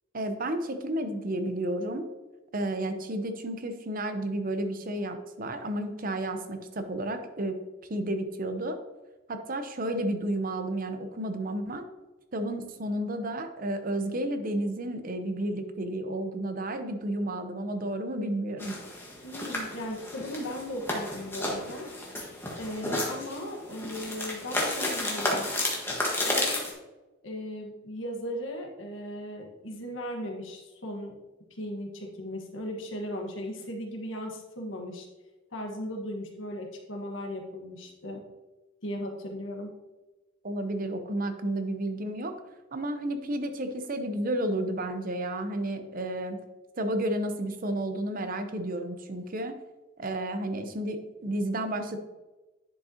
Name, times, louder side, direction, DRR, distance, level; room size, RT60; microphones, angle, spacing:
voice 1, 0.1-2.1 2.5-7.6 7.9-8.8 9.3-11.8 12.3-18.8 40.4-42.3 42.7-46.4 46.8-49.5 50.0-52.0, right 1 dB, 45° right, 8 dB, 0.7 m, -31 dB
sound 1, 18.6-26.7, left 1 dB, 10° left, 1.4 m, -32 dB
voice 2, 19.2-21.9 22.6-25.5 26.2-26.6 27.2-31.1 31.5-35.1 35.5-38.2 38.8-39.7, equal, 65° left, 1 dB, 1.4 m, -37 dB
10.5 x 5.3 x 2.8 m, 1.1 s
head